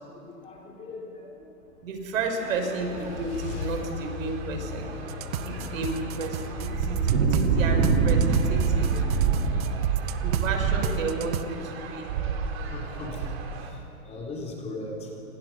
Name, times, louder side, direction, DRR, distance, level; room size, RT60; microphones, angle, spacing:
voice 1, 0.1-1.2 2.6-2.8 8.9-9.9 10.1-10.9 12.7-13.3 13.7-13.8 14.0-15.1, left 2 dB, 15° left, -1 dB, 3.5 m, -40 dB
sound 1, 1.8-11.0, left 3 dB, 50° left, 4.3 m, -39 dB
voice 2, 1.8-5.0 5.4-8.9 10.2-12.1, right 3 dB, 60° right, 4 dB, 5.3 m, -32 dB
sound 2, 2.4-13.7, right 5 dB, 45° right, 3.3 m, -27 dB
sound 3, 5.1-7.5 7.8-10.5 10.8-11.4, right 13 dB, 25° right, 0.6 m, -33 dB
28.5 x 26.0 x 6.1 m, 2.9 s
hypercardioid pair, 155°, 44 cm